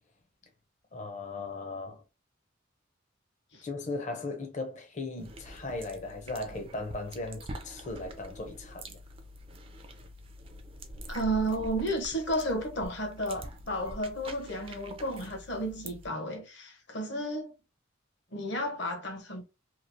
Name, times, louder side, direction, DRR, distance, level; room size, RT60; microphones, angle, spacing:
voice 1, 0.9-2.0 3.6-9.0, left 2 dB, 35° left, 0.6 m, -37 dB
sound 1, 5.2-16.1, right 1 dB, 30° right, 0.4 m, -45 dB
voice 2, 11.1-17.5 18.3-19.4, right 1 dB, 60° left, 0.9 m, -32 dB
3.0 x 2.4 x 2.6 m
head